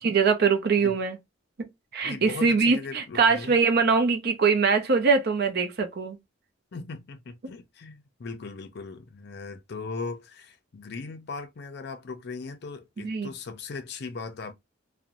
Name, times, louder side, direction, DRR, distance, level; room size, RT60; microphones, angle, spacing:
voice 1, 0.0-1.2 1.6-6.2 13.0-13.3, right 5 dB, 55° right, 0.5 m, -23 dB
voice 2, 2.0-3.6 6.7-14.5, left 4 dB, 55° left, 0.5 m, -38 dB
2.5 x 2.1 x 2.9 m
head